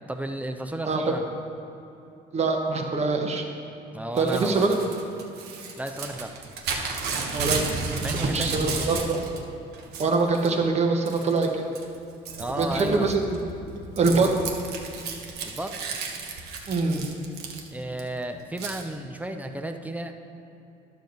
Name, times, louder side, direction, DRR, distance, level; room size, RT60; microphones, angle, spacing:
voice 1, 0.1-1.2 3.9-4.7 5.8-6.3 8.0-8.9 12.4-13.1 15.4-15.7 17.7-20.1, right 1 dB, 10° right, 6 dB, 0.6 m, -33 dB
voice 2, 2.3-3.4 4.2-4.8 7.3-7.7 8.3-9.3 10.0-11.7 12.5-13.4 14.0-14.3 16.7-17.0, right 3 dB, 40° right, 3 dB, 1.2 m, -24 dB
Crumpling crinkling / Tearing, 4.2-9.4 9.7-10.5 11.0-11.5 11.7-18.0 18.6-18.8, right 4 dB, 70° right, 1.2 m, -33 dB
11.5 x 6.9 x 4.0 m, 2.9 s
cardioid pair, 110°, 17 cm